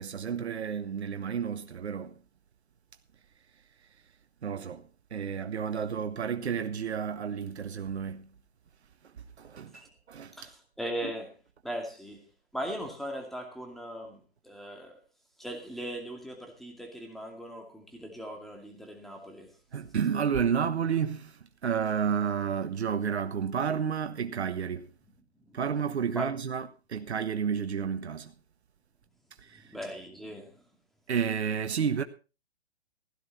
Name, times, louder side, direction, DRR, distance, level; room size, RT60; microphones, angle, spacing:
voice 1, 0.0-2.1 4.4-8.3 9.4-9.8 10.1-10.5 11.0-11.1 19.7-24.9 25.5-28.3 29.4-29.7 31.1-32.0, right 7 dB, 90° right, 1.2 m, -31 dB
voice 2, 10.4-11.3 11.6-12.2 12.5-15.0 15.4-19.5 25.4-25.6 26.2-26.3 29.5-30.6, equal, ahead, 2.4 m, -39 dB
16.0 x 11.0 x 4.2 m
hypercardioid pair, 145°, 32 cm